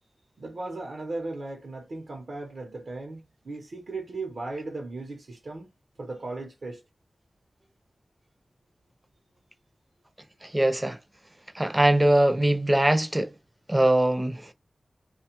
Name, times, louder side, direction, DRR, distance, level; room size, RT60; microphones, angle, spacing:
voice 1, 0.4-5.7 6.0-6.8, right 2 dB, 70° right, 0.8 m, -37 dB
voice 2, 10.4-11.0 11.5-13.3 13.7-14.5, right 1 dB, 15° right, 0.5 m, -22 dB
2.8 x 2.3 x 2.9 m
wide cardioid pair, 70°, 0 cm